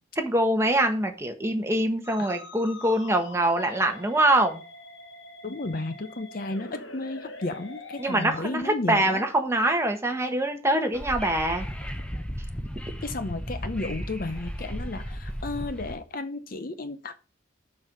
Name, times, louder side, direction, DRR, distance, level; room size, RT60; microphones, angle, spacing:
voice 1, 0.2-4.6 8.0-11.7, right 1 dB, 15° right, 4 dB, 1.2 m, -24 dB
Musical instrument, 2.0-8.4, left 3 dB, 65° left, 1.2 m, -44 dB
voice 2, 5.4-9.2 13.0-17.3, left 2 dB, 45° left, 10 dB, 0.7 m, -33 dB
Wind / Subway metro underground, 10.9-15.9, equal, 5° left, 0.8 m, -35 dB
7.0 x 5.4 x 5.9 m, 0.33 s
head